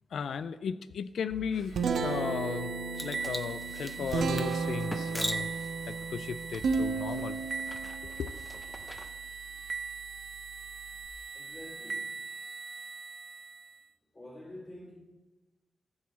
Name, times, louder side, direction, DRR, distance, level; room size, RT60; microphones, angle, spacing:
voice 1, 0.1-2.7 3.0-5.5 5.9-7.4 8.0-8.3, left 7 dB, 70° left, 0.3 m, -36 dB
Guitar, 1.3-11.1, right 4 dB, 75° right, 0.9 m, -35 dB
sound 1, 1.7-13.9, right 5 dB, 35° right, 0.6 m, -41 dB
sound 2, 2.9-9.1, equal, 5° left, 0.6 m, -42 dB
voice 2, 11.3-12.2 14.1-14.9, left 1 dB, 25° left, 2.3 m, -47 dB
14.0 x 4.8 x 7.2 m
wide cardioid pair, 165°, 0 cm